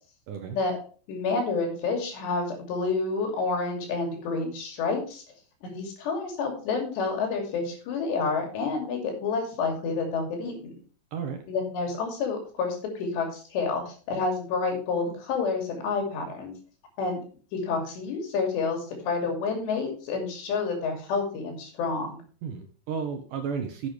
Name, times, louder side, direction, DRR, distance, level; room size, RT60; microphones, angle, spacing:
voice 1, 1.1-5.2 5.6-10.7 11.5-16.5 17.0-17.2 17.5-22.2, left 4 dB, 85° left, 2 dB, 4.9 m, -29 dB
voice 2, 11.1-11.4 22.4-23.9, right 6 dB, 70° right, 6 dB, 2.1 m, -33 dB
11.0 x 8.8 x 3.3 m, 0.39 s
omnidirectional pair, 4.8 m